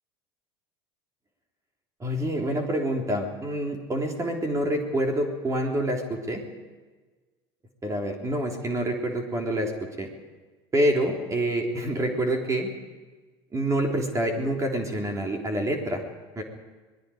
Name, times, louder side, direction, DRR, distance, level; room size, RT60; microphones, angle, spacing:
voice 1, 2.0-6.4 7.8-9.7 10.0-10.1 10.7-12.7 13.5-16.0 16.4-16.5, right 1 dB, 25° right, 1 dB, 3.5 m, -27 dB
26.0 x 20.0 x 5.1 m, 1.3 s
hypercardioid pair, 75°, 13 cm